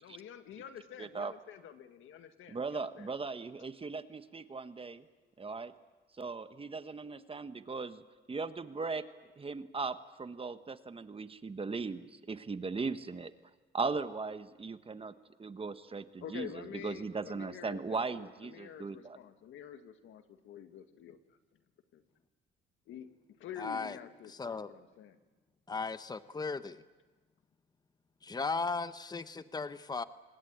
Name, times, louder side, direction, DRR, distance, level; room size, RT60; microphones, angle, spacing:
voice 1, 0.0-3.1 16.2-21.4 21.9-22.0 22.9-23.1 23.4-25.2, left 9 dB, 80° left, 8 dB, 1.9 m, -48 dB
voice 2, 1.0-1.3 2.5-5.0 5.4-5.7 6.2-8.0 8.3-9.0 9.4-13.3 13.7-15.1 15.4-19.2, right 4 dB, 30° right, 11 dB, 1.3 m, -38 dB
voice 3, 23.6-24.0 24.3-24.7 25.7-26.8 28.2-30.0, left 4 dB, 20° left, 12 dB, 1.0 m, -36 dB
25.0 x 20.5 x 8.8 m, 1.2 s
cardioid pair, 90°, 20 cm